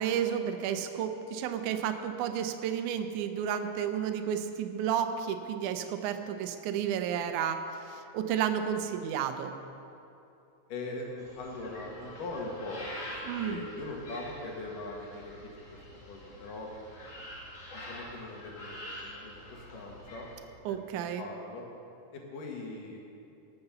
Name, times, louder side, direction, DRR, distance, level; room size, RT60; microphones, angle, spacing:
voice 1, 0.0-7.6 7.9-9.6 13.3-13.6 20.7-21.2, right 9 dB, 75° right, 7 dB, 2.2 m, -32 dB
voice 2, 10.7-15.3 15.7-15.8 16.1-16.7 17.7-20.3 20.7-21.6 22.1-23.0, left 2 dB, 80° left, 0 dB, 3.4 m, -41 dB
sound 1, 11.2-20.4, left 1 dB, 50° left, 3.4 m, -46 dB
18.5 x 6.9 x 7.0 m, 2.7 s
omnidirectional pair, 3.7 m